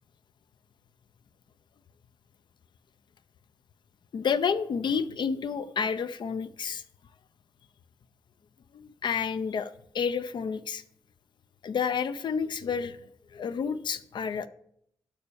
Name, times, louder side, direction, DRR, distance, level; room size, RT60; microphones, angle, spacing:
voice 1, 4.1-6.8 8.7-10.8 11.6-13.0 13.3-14.5, left 6 dB, 65° left, 13 dB, 0.7 m, -30 dB
11.5 x 4.4 x 6.9 m, 0.70 s
cardioid pair, 85°, 8 cm